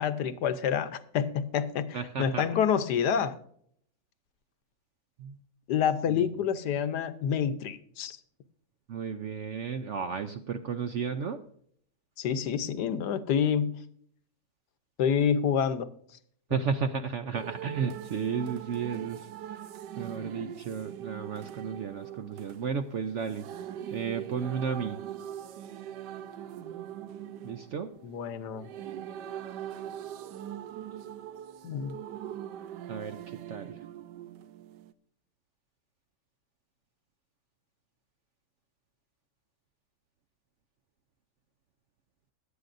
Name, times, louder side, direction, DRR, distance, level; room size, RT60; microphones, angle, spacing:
voice 1, 0.0-3.4 5.7-8.2 12.2-13.8 15.0-15.9 28.0-28.7 31.6-32.0, left 8 dB, 75° left, 12 dB, 1.4 m, -28 dB
voice 2, 1.9-2.5 5.2-5.4 6.1-6.3 8.9-11.4 16.5-19.3 20.0-23.5 23.9-25.0 27.4-27.9 32.9-33.8, right 6 dB, 65° right, 8 dB, 0.7 m, -33 dB
sound 1, 17.3-34.9, right 10 dB, 85° right, 1.3 m, -42 dB
16.5 x 11.0 x 2.6 m, 0.64 s
omnidirectional pair, 1.8 m